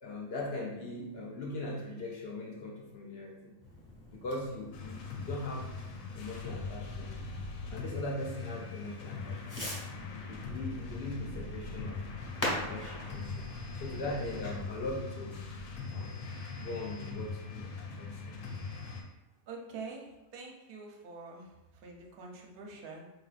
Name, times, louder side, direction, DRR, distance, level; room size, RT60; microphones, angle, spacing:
voice 1, 0.0-3.6 4.1-5.7 6.1-7.2 7.7-9.5 10.1-12.0 12.5-13.5 13.7-15.4 15.9-16.2 16.6-18.5, left 2 dB, 65° left, -1 dB, 0.6 m, -40 dB
Fireworks, 3.6-15.0, equal, 15° left, 0.9 m, -44 dB
sound 1, 4.7-19.0, left 4 dB, 85° left, 1.0 m, -41 dB
voice 2, 19.5-23.1, right 4 dB, 55° right, 0 dB, 0.7 m, -46 dB
4.4 x 2.5 x 2.4 m, 0.99 s
omnidirectional pair, 1.4 m